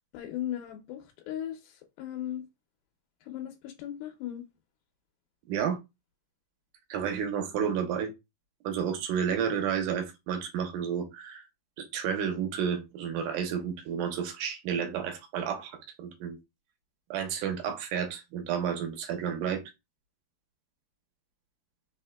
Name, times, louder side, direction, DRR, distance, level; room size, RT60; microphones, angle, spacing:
voice 1, 0.1-2.5 3.2-4.4, left 11 dB, 85° left, 2.6 m, -37 dB
voice 2, 6.9-8.1 8.6-11.5 11.8-16.4 17.1-19.6, right 7 dB, 70° right, 2.3 m, -31 dB
5.7 x 3.5 x 2.3 m
omnidirectional pair, 4.2 m